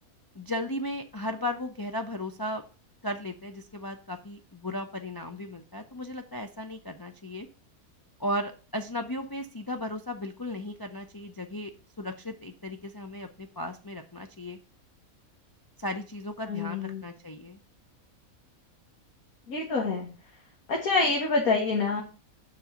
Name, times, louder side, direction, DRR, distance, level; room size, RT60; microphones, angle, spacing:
voice 1, 0.3-2.6 3.0-7.5 8.2-11.7 12.0-14.6 15.8-17.6, left 1 dB, 25° left, 4 dB, 0.5 m, -35 dB
voice 2, 16.5-17.0 19.5-20.1 20.7-22.0, left 3 dB, 80° left, 0 dB, 2.1 m, -26 dB
7.5 x 4.8 x 6.9 m, 0.37 s
omnidirectional pair, 1.5 m